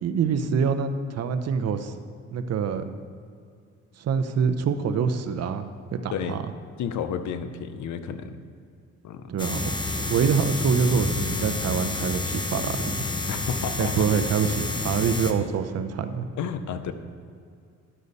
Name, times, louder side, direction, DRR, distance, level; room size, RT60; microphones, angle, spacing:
voice 1, 0.0-1.9 2.3-2.9 4.0-6.4 9.3-9.6 10.1-13.1 13.8-16.3, right 6 dB, 55° right, 9 dB, 0.7 m, -25 dB
voice 2, 6.8-8.4 9.0-9.3 13.3-14.3 16.4-16.9, left 7 dB, 70° left, 10 dB, 0.7 m, -31 dB
sound 1, 9.4-15.3, left 2 dB, 15° left, 0.7 m, -29 dB
11.0 x 6.5 x 4.1 m, 2.3 s
cardioid pair, 90°, 30 cm